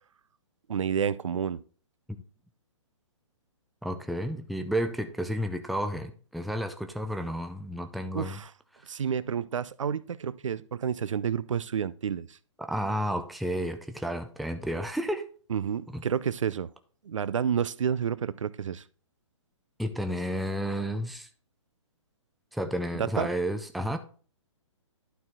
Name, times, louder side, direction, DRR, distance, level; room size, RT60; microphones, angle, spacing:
voice 1, 0.7-1.6 8.1-8.5 8.9-12.4 15.5-16.7 17.0-18.8 23.0-23.3, right 7 dB, 80° right, 0.5 m, -30 dB
voice 2, 3.8-8.4 12.6-15.3 15.9-16.0 19.8-21.3 22.5-24.0, equal, ahead, 0.4 m, -31 dB
11.5 x 4.4 x 3.7 m
hypercardioid pair, 130°, 16 cm